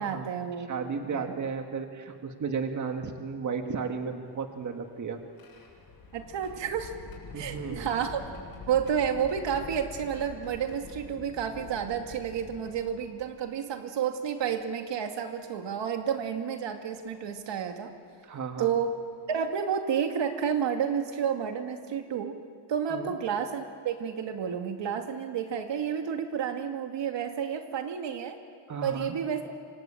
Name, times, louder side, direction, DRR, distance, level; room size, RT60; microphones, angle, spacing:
voice 1, 0.0-0.7 1.1-1.3 6.1-6.9 7.3-8.2 8.7-17.9 18.6-18.9 19.3-22.4 22.7-28.4 28.8-29.4, right 8 dB, 80° right, 5 dB, 2.4 m, -30 dB
voice 2, 0.7-5.2 7.3-7.9 18.2-18.8 22.9-23.1 28.7-29.2, right 5 dB, 45° right, 5 dB, 1.9 m, -34 dB
sound 1, 4.2-13.5 14.4-14.5 16.0-16.2 17.0-17.2 18.8-18.9 19.3-19.5, left 3 dB, 55° left, 7.5 m, -46 dB
27.0 x 25.0 x 8.8 m, 2.2 s
wide cardioid pair, 160°, 43 cm